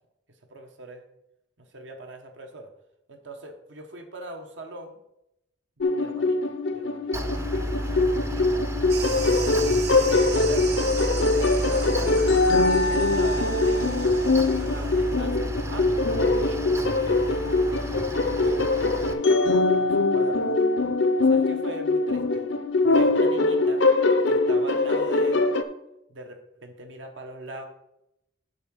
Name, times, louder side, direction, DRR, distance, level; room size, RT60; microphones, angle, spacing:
voice 1, 0.5-1.0 1.7-2.7 3.1-5.0 5.8-6.4 6.7-8.6 9.4-12.2 12.9-14.1 14.5-17.2 18.2-20.5 21.2-22.5 22.9-23.9 24.3-25.5 26.1-27.7, right 1 dB, 75° right, 4 dB, 1.1 m, -41 dB
sound 1, 5.8-25.6, left 3 dB, 75° left, 0.6 m, -22 dB
Mechanical fan, 7.1-19.1, right 1 dB, 15° right, 0.5 m, -31 dB
sound 2, 8.9-15.0, right 6 dB, 55° right, 0.9 m, -38 dB
9.4 x 3.8 x 6.2 m, 0.84 s
head